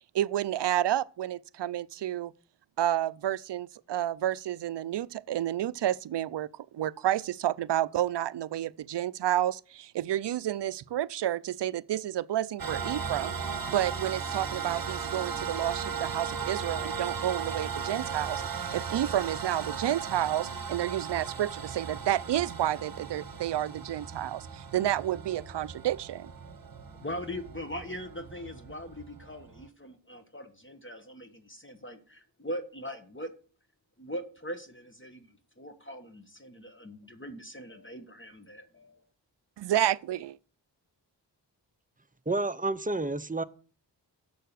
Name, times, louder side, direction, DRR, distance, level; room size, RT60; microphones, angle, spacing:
voice 1, 0.1-2.3 2.8-6.5 6.7-13.3 13.7-26.3 39.6-40.4, right 12 dB, 70° right, 0.5 m, -30 dB
sound 1, 12.6-29.7, right 6 dB, 55° right, 1.0 m, -37 dB
voice 2, 27.0-33.3 34.0-35.3 35.6-39.0, equal, 25° left, 1.1 m, -41 dB
voice 3, 42.3-43.4, right 2 dB, 20° right, 0.6 m, -29 dB
6.9 x 6.6 x 6.6 m
cardioid pair, 50°, 43 cm